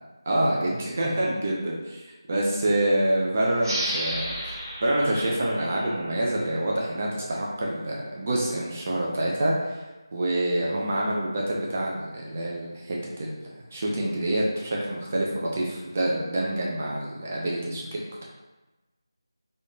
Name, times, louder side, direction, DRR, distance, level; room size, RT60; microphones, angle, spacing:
voice 1, 0.3-1.8 2.3-4.5 4.8-9.8 10.1-13.4 13.7-18.2, right 1 dB, 20° right, -3 dB, 0.3 m, -26 dB
sound 1, 3.6-6.9, equal, 60° right, 1.1 m, -33 dB
3.4 x 2.4 x 2.6 m, 1.1 s
figure-of-eight pair, 175°, 2 cm